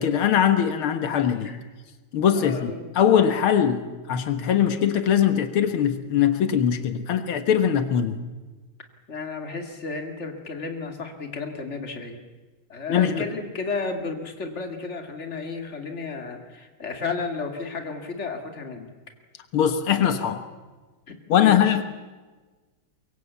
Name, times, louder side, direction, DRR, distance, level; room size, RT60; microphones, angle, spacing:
voice 1, 0.0-1.5 2.1-8.2 12.9-13.2 19.5-20.4 21.3-21.8, left 9 dB, 85° left, 9 dB, 2.1 m, -21 dB
voice 2, 2.3-2.8 9.1-12.2 12.7-18.9 21.1-21.2 21.4-21.8, left 4 dB, 35° left, 5 dB, 2.7 m, -33 dB
23.5 x 23.0 x 8.4 m, 1.3 s
omnidirectional pair, 2.3 m